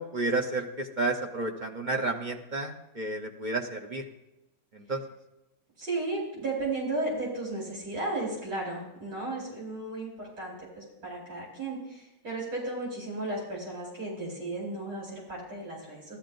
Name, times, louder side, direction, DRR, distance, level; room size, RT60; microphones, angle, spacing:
voice 1, 0.0-4.1 4.7-5.0, right 2 dB, 35° right, 2 dB, 0.9 m, -31 dB
voice 2, 5.8-16.2, right 2 dB, 80° right, -5 dB, 5.3 m, -34 dB
16.0 x 13.0 x 2.6 m, 0.95 s
omnidirectional pair, 1.9 m